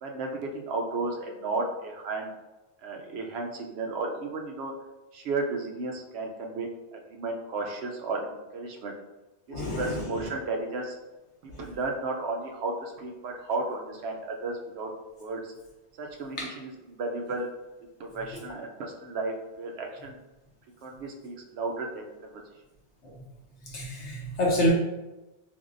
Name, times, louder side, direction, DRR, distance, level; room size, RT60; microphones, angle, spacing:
voice 1, 0.0-2.3 2.8-4.7 5.1-8.9 9.5-11.0 11.6-14.9 15.2-15.5 16.0-17.5 18.0-20.2 20.8-22.4, right 3 dB, 70° right, 2 dB, 0.8 m, -33 dB
voice 2, 9.5-10.2 16.4-16.5 23.6-24.7, left 1 dB, 80° left, -3 dB, 1.3 m, -28 dB
3.5 x 3.5 x 2.5 m, 1.1 s
omnidirectional pair, 1.1 m